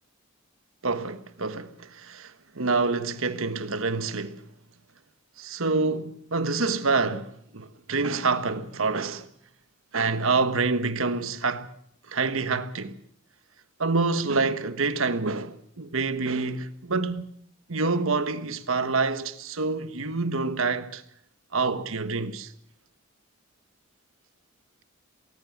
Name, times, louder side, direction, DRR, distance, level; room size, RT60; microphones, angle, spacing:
voice 1, 0.8-4.5 5.4-9.3 9.9-11.7 12.1-13.0 13.8-17.3 17.7-21.0 21.5-22.5, right 3 dB, 75° right, 1.3 m, -27 dB
20.0 x 19.0 x 7.3 m
head